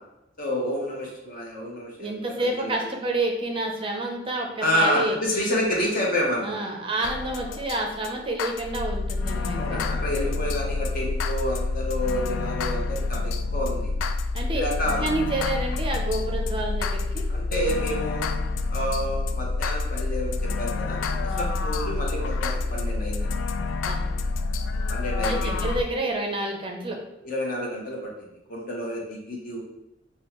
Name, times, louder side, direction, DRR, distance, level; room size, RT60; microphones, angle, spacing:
voice 1, 0.4-2.1 2.4-2.9 4.6-6.6 9.5-13.9 14.5-15.1 17.3-18.3 18.7-23.3 24.9-25.5 27.2-29.6, equal, 50° left, -2 dB, 0.9 m, -29 dB
voice 2, 2.0-5.2 6.4-9.8 14.3-14.6 15.0-17.2 21.3-21.5 23.6-24.0 25.2-27.0, right 2 dB, 30° right, 1 dB, 0.5 m, -29 dB
sound 1, 7.0-25.8, left 3 dB, 80° left, 0.3 m, -28 dB
5.3 x 2.2 x 2.9 m, 0.90 s
head